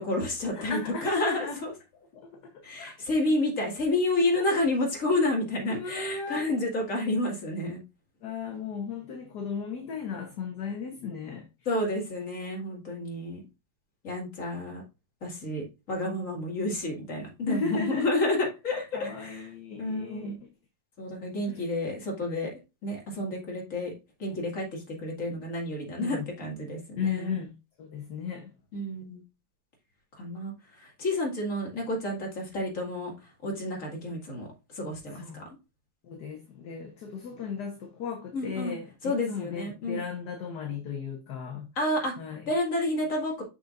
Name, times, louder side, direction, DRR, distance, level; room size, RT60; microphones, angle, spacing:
voice 1, 0.0-1.7 2.6-7.8 11.7-13.4 14.0-14.8 15.2-19.5 19.8-20.4 21.0-22.5 22.8-23.9 24.2-27.4 28.7-29.2 30.2-30.5 30.8-33.1 33.4-34.5 34.7-35.2 38.3-38.7 39.0-40.0 41.8-42.1 42.5-43.4, left 1 dB, 40° left, 2.6 m, -30 dB
voice 2, 0.5-1.6 2.1-2.3 2.5-2.9 4.3-4.4 5.7-6.4 8.2-11.5 17.5-18.1 18.9-20.5 21.5-21.6 26.0-26.3 27.0-28.5 35.1-35.4 36.0-41.7 42.2-42.5, left 6 dB, 55° left, 1.6 m, -36 dB
6.8 x 6.7 x 2.6 m
omnidirectional pair, 2.3 m